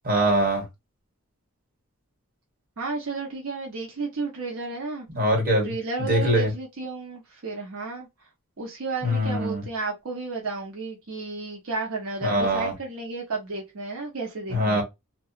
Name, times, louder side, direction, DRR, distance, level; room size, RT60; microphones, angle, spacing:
voice 1, 0.0-0.6 5.1-5.7 6.1-6.5 9.0-9.6 12.2-12.7 14.5-14.8, right 1 dB, 40° right, 1.3 m, -23 dB
voice 2, 2.8-5.1 5.6-8.1 8.6-14.8, right 3 dB, 75° right, 0.7 m, -32 dB
2.8 x 2.3 x 2.3 m
head